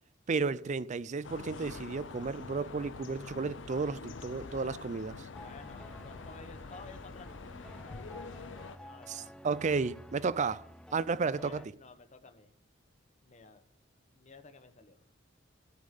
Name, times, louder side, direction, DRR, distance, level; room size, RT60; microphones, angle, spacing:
voice 1, 0.3-5.2 9.1-10.6 10.9-11.6, right 4 dB, 40° right, 0.4 m, -33 dB
sound 1, 1.2-8.8, left 4 dB, 75° left, 0.7 m, -46 dB
voice 2, 5.3-9.3 11.4-12.5 13.2-13.6 14.1-15.0, left 3 dB, 40° left, 1.0 m, -54 dB
sound 2, 5.3-11.7, left 1 dB, 5° left, 0.6 m, -51 dB
14.0 x 5.3 x 8.2 m
head